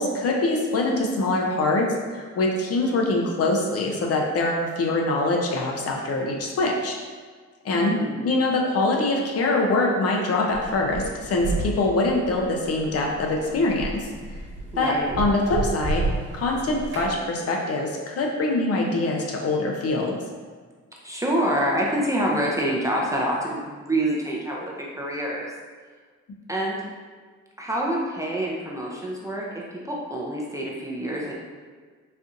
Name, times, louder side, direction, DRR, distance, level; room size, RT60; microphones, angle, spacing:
voice 1, 0.0-1.9 2.1-7.0 7.6-14.1 14.8-16.0 16.3-20.2, left 2 dB, 50° left, 0 dB, 0.6 m, -24 dB
voice 2, 7.7-8.3 14.7-15.2 21.0-25.5 26.5-26.8 27.6-29.5 29.8-31.3, right 1 dB, 10° right, -3 dB, 0.5 m, -26 dB
sound 1, 10.5-17.1, right 2 dB, 40° right, 1.2 m, -32 dB
4.3 x 2.5 x 2.5 m, 1.5 s
cardioid pair, 90°, 30 cm